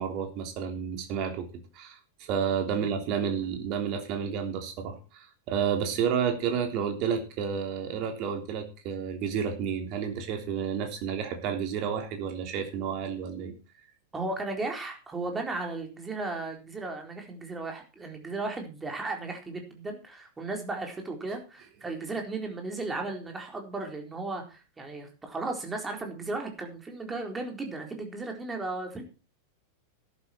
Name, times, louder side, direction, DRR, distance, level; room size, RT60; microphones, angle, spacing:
voice 1, 0.0-1.5 1.7-13.5, right 7 dB, 40° right, 5 dB, 3.3 m, -31 dB
voice 2, 14.1-29.0, right 3 dB, 15° right, 3 dB, 4.1 m, -35 dB
14.0 x 11.5 x 4.5 m, 0.33 s
figure-of-eight pair, 90°, 0 cm